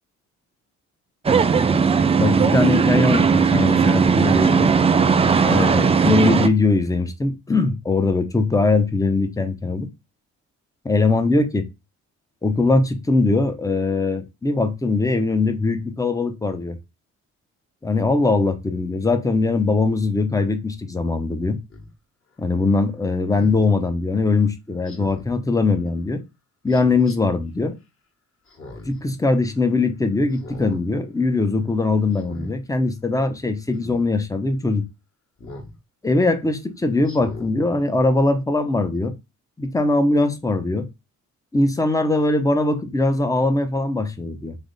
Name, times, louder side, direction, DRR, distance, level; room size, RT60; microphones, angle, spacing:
sound 1, 1.2-6.5, right 6 dB, 20° right, 0.4 m, -17 dB
voice 1, 2.2-4.7 5.4-9.9 10.8-11.6 12.4-16.8 17.8-21.6 22.4-26.2 26.6-27.7 28.9-34.9 36.0-39.1 39.6-40.9 41.5-44.6, left 3 dB, 10° left, 0.8 m, -21 dB
Speech synthesizer, 21.7-21.9 23.4-23.6 24.9-25.3 26.7-27.2 28.5-29.0 29.4-29.5 30.3-30.8 31.2-31.5 32.1-32.5 33.8-34.0 35.4-35.7 36.2-36.3 37.0-37.5 38.0-38.1, left 2 dB, 40° left, 1.7 m, -39 dB
3.4 x 3.2 x 4.0 m
cardioid pair, 90°, 30 cm